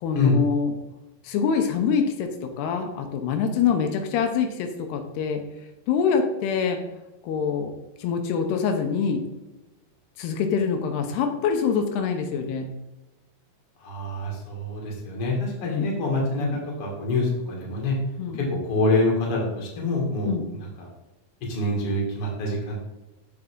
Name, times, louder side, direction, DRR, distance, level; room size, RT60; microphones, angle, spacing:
voice 1, 0.0-0.7 1.2-5.4 5.9-6.8 7.2-7.7 8.0-9.2 10.2-12.7 15.7-15.9 16.4-16.6 18.2-18.4 20.3-20.4, left 6 dB, 85° left, 5 dB, 2.9 m, -25 dB
voice 2, 13.8-18.0 18.3-20.9 21.4-22.8, left 2 dB, 40° left, -2 dB, 2.5 m, -26 dB
7.7 x 6.0 x 3.7 m, 1.0 s
omnidirectional pair, 4.6 m